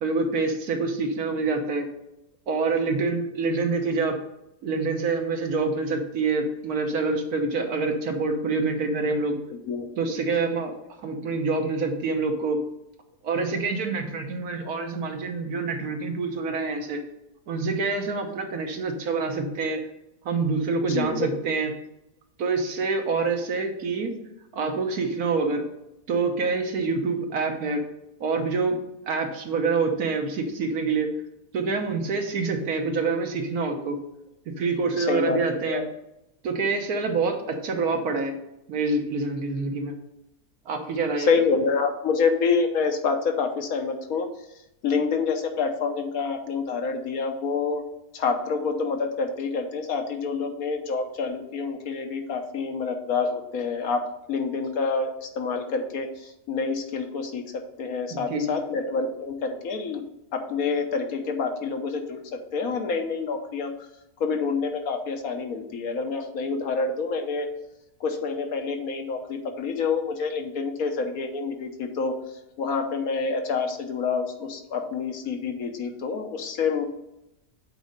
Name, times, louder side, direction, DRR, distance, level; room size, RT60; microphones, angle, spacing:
voice 1, 0.0-1.9 2.5-4.2 4.6-9.4 10.0-10.7 11.0-12.6 13.2-17.0 17.5-19.8 20.2-21.7 22.4-24.1 24.5-25.6 26.1-27.8 28.2-28.8 29.1-31.1 31.5-34.0 34.6-35.8 36.4-38.3 38.7-39.9 40.7-41.3 58.1-58.6, right 4 dB, 70° right, 4 dB, 1.5 m, -26 dB
voice 2, 9.5-9.9 20.9-21.5 35.0-35.4 35.7-35.9 41.2-44.3 44.8-47.8 48.1-60.0 60.3-63.7 64.2-67.5 68.0-72.2 72.6-76.9, left 4 dB, 65° left, 5 dB, 1.3 m, -27 dB
8.0 x 4.2 x 5.1 m, 0.88 s
omnidirectional pair, 1.6 m